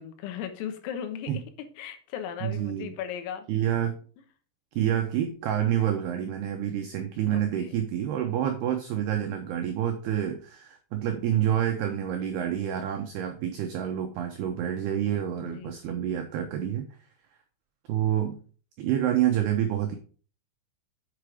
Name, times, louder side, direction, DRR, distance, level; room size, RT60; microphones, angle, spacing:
voice 1, 0.0-3.5 7.3-7.7 15.4-15.8, left 9 dB, 90° left, 8 dB, 3.9 m, -37 dB
voice 2, 2.4-2.9 3.5-4.0 4.8-16.9 17.9-18.4 18.8-20.0, right 10 dB, 90° right, 5 dB, 2.2 m, -28 dB
8.0 x 6.4 x 4.9 m, 0.40 s
omnidirectional pair, 5.9 m